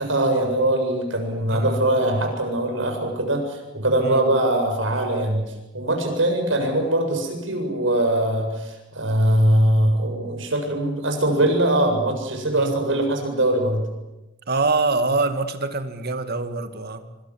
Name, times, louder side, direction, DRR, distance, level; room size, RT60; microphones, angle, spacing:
voice 1, 0.0-5.4 5.7-13.8, right 1 dB, 85° right, 4 dB, 7.5 m, -22 dB
voice 2, 1.5-1.8 4.0-4.3 12.5-12.7 14.5-17.0, right 3 dB, 55° right, 9 dB, 2.1 m, -25 dB
25.5 x 25.5 x 7.6 m, 0.98 s
head